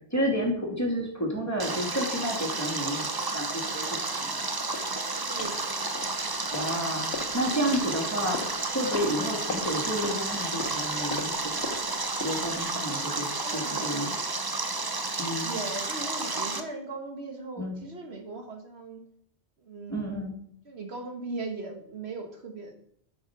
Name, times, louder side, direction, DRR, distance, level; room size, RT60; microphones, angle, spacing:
voice 1, 0.1-4.5 6.5-8.4 8.7-11.7 12.2-13.3 13.5-14.2 15.2-15.5 17.6-17.8 19.9-20.3, equal, 15° left, -1 dB, 2.5 m, -31 dB
Stream, 1.6-16.6, right 3 dB, 20° right, 0.7 m, -31 dB
sound 1, 4.7-5.0 5.4-5.6 5.9-6.8 7.1-12.6, left 3 dB, 60° left, 1.8 m, -39 dB
voice 2, 5.2-6.0 13.3-13.8 15.4-19.0 19.6-20.2 20.7-22.8, right 3 dB, 65° right, 3 dB, 1.6 m, -39 dB
10.5 x 6.0 x 5.9 m, 0.68 s
omnidirectional pair, 1.2 m